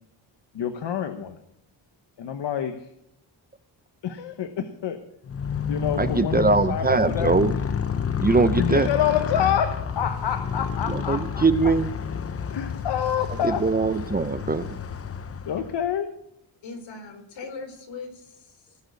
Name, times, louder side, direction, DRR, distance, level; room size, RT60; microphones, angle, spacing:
voice 1, 0.5-1.4 2.2-2.9 4.0-5.0 5.7-7.5 8.5-11.5 12.5-13.7 15.4-16.1, left 9 dB, 70° left, 7 dB, 1.1 m, -27 dB
Motorcycle, 5.2-15.9, left 7 dB, 30° left, 0.7 m, -29 dB
voice 2, 6.0-7.5 8.2-8.9 10.9-11.9 13.4-14.8, right 4 dB, 20° right, 12 dB, 0.6 m, -22 dB
voice 3, 16.6-18.8, left 4 dB, 85° left, 3 dB, 4.4 m, -40 dB
18.5 x 6.5 x 8.2 m, 0.80 s
wide cardioid pair, 125°, 44 cm